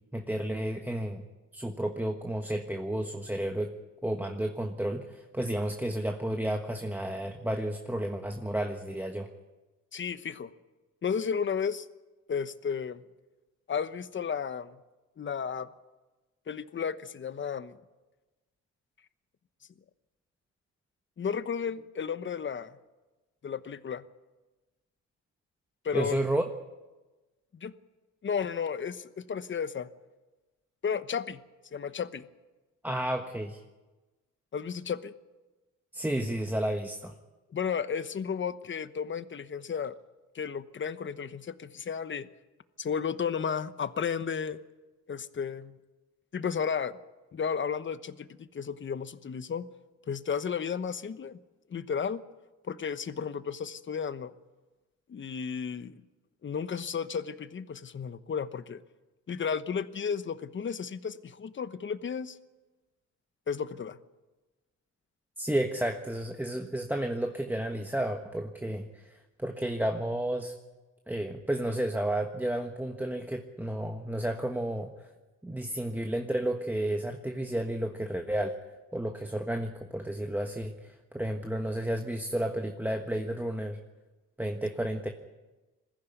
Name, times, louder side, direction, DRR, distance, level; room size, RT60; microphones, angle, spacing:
voice 1, 0.1-1.2 1.5-3.7 4.0-9.3 25.9-26.4 32.8-33.6 35.9-37.1 65.4-70.5 71.1-75.1 75.4-78.6 78.9-83.8 84.4-85.1, right 1 dB, 5° right, 4 dB, 1.4 m, -32 dB
voice 2, 9.9-10.5 11.0-11.9 12.3-13.0 13.7-14.8 15.2-15.7 16.5-17.8 21.2-22.7 23.4-24.0 25.8-26.2 27.5-27.7 28.2-29.9 30.8-31.4 31.7-32.2 34.5-35.1 37.5-40.0 40.3-42.3 42.8-44.6 45.1-45.8 46.3-47.0 47.3-49.7 50.1-51.4 51.7-52.2 52.6-54.3 55.1-56.0 56.4-58.8 59.3-62.4 63.5-64.0, left 6 dB, 40° left, 13 dB, 1.1 m, -33 dB
21.0 x 15.0 x 9.3 m, 1.2 s
cardioid pair, 90°, 30 cm